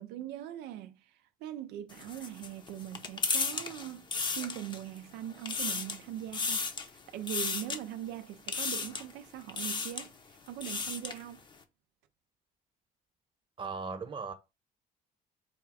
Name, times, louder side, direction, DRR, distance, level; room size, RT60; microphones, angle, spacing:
voice 1, 0.0-11.4, right 12 dB, 85° right, 0.4 m, -41 dB
sound 1, 1.9-5.0 5.3-6.0 6.3-6.9 7.3-7.8 8.5-9.1 9.5-10.1 10.5-11.2, left 4 dB, 25° left, 0.6 m, -34 dB
voice 2, 13.6-14.3, right 4 dB, 30° right, 0.9 m, -37 dB
4.2 x 2.3 x 4.7 m
cardioid pair, 110°, 17 cm